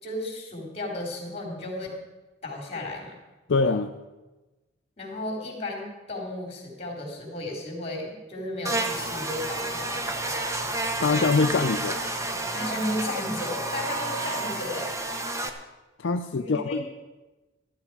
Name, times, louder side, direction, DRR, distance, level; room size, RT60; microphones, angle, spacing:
voice 1, 0.0-2.0 2.4-3.1 5.0-10.1 12.5-15.0 16.4-16.8, left 1 dB, 30° left, 0 dB, 3.8 m, -34 dB
voice 2, 3.5-3.9 11.0-12.0 16.0-16.8, left 4 dB, 65° left, 6 dB, 0.5 m, -24 dB
Buzz, 8.6-15.5, right 2 dB, 15° right, 0.9 m, -30 dB
13.5 x 13.0 x 4.8 m, 1.1 s
head